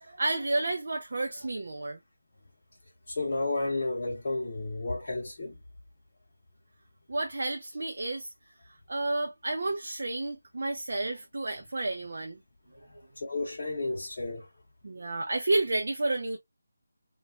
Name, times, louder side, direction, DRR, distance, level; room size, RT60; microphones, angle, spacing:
voice 1, 0.0-2.0 7.1-8.3 8.9-12.4 14.8-16.4, right 2 dB, 45° right, 0.4 m, -31 dB
voice 2, 3.1-5.6 12.9-14.5, left 2 dB, 30° left, 0.8 m, -32 dB
3.1 x 2.2 x 2.4 m
figure-of-eight pair, 180°, 0 cm